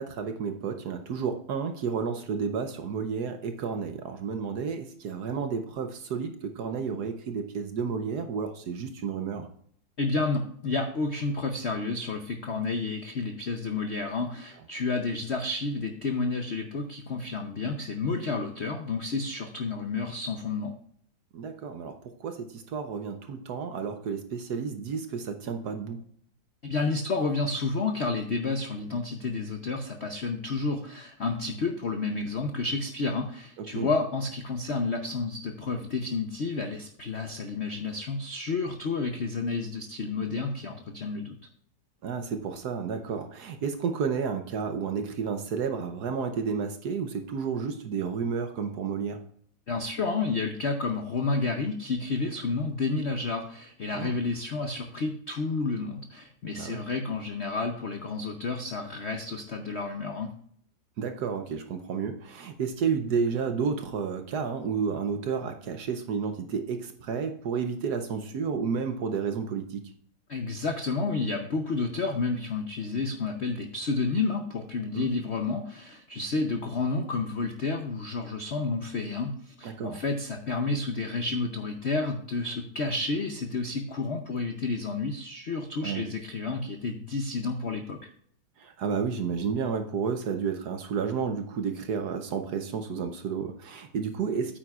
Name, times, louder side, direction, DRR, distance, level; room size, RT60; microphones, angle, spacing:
voice 1, 0.0-9.5 21.3-26.0 33.7-33.9 42.0-49.2 53.9-54.2 56.6-56.8 61.0-69.9 74.9-75.1 79.6-80.0 85.8-86.1 88.6-94.6, right 6 dB, 65° right, 7 dB, 1.1 m, -31 dB
voice 2, 10.0-20.7 26.6-41.4 49.7-60.3 70.3-88.0, left 3 dB, 70° left, 5 dB, 0.6 m, -30 dB
8.9 x 8.9 x 2.4 m, 0.63 s
omnidirectional pair, 2.3 m